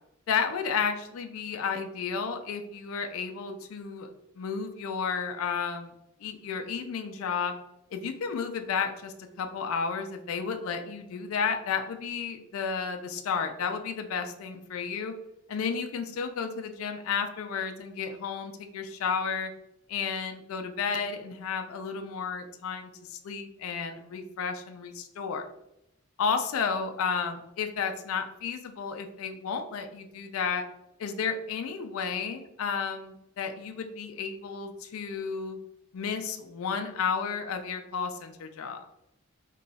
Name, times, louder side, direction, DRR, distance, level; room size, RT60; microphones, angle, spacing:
voice 1, 0.3-4.1 4.4-5.9 6.2-7.5 7.9-15.1 15.5-19.5 19.9-25.5 26.2-30.6 31.0-35.6 35.9-38.8, left 6 dB, 75° left, 6 dB, 0.4 m, -32 dB
2.9 x 2.3 x 3.9 m, 0.84 s
head